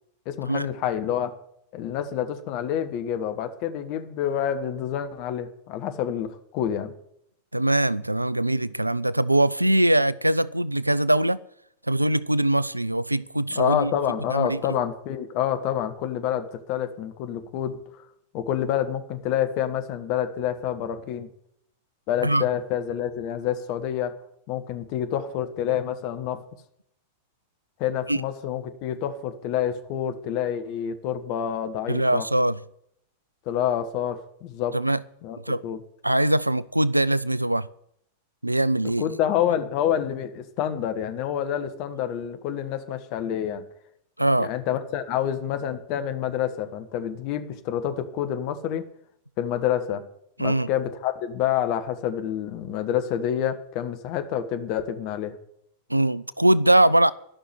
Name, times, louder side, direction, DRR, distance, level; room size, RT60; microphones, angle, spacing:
voice 1, 0.2-1.3 1.7-6.9 13.5-17.8 18.3-21.3 22.1-24.1 24.5-26.4 27.8-32.2 33.4-34.8 35.2-35.4 35.6-35.8 39.0-43.6 44.4-48.8 49.4-50.0 50.4-55.4, left 10 dB, 45° left, 1.4 m, -28 dB
voice 2, 7.5-11.4 11.9-13.9 14.3-14.6 22.2-22.4 28.1-28.2 31.9-32.6 34.7-35.0 35.5-35.6 36.0-37.7 38.4-39.1 44.2-44.5 50.4-50.7 55.9-57.1, right 1 dB, 85° right, 0.4 m, -22 dB
12.5 x 6.3 x 9.7 m
figure-of-eight pair, 90°, 0 cm